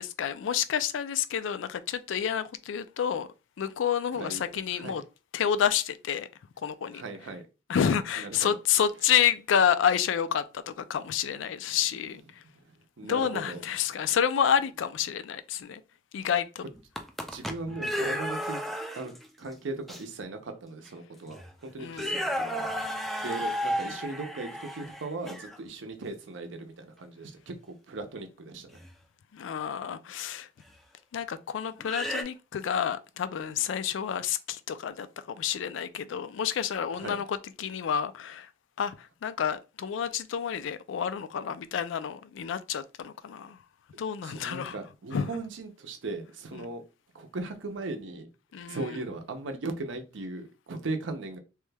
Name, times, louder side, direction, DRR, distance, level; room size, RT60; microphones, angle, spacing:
voice 1, 0.0-3.3 3.6-5.0 5.3-6.3 6.6-7.0 7.7-12.4 13.0-15.8 16.1-16.7 17.7-17.8 21.8-22.2 29.3-30.5 31.1-38.5 38.8-43.6 44.0-44.8 45.1-45.3 46.5-46.7 48.5-49.0, left 8 dB, 80° left, 0.3 m, -29 dB
voice 2, 6.9-7.4 8.2-8.6 12.7-13.6 17.2-18.6 19.0-19.1 19.4-22.7 23.2-28.8 36.9-37.2 44.2-46.8 47.1-48.3 48.7-51.4, right 3 dB, 75° right, 0.6 m, -38 dB
sound 1, 16.8-19.3 19.9-20.0 20.9-21.0 21.3-21.5 21.9-25.6 28.7-28.9 30.7-30.8 31.8-32.2, equal, ahead, 0.3 m, -33 dB
3.1 x 2.2 x 3.2 m
head